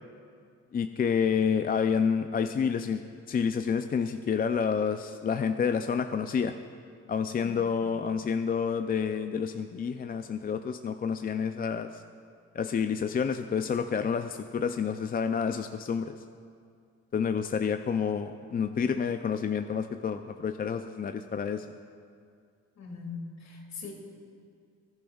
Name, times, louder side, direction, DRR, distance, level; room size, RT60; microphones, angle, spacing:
voice 1, 0.7-3.0 3.3-6.5 7.1-12.0 12.5-16.1 17.1-21.7, left 6 dB, 30° left, 8 dB, 0.4 m, -29 dB
voice 2, 22.8-23.9, left 4 dB, 60° left, 0 dB, 2.3 m, -41 dB
21.0 x 10.5 x 2.4 m, 2.3 s
cardioid pair, 90°, 30 cm